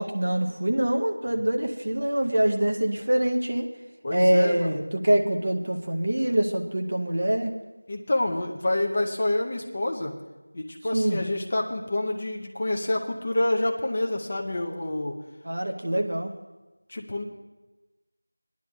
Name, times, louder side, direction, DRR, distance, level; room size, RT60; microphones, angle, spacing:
voice 1, 0.0-3.7 4.1-7.5 10.9-11.2 15.4-16.3, right 1 dB, 35° right, 3 dB, 0.6 m, -24 dB
voice 2, 4.0-4.8 7.9-10.1 10.5-15.2 16.9-17.2, left 1 dB, 20° left, 1 dB, 0.5 m, -27 dB
21.5 x 10.5 x 2.3 m, 1.1 s
figure-of-eight pair, 180°, 0 cm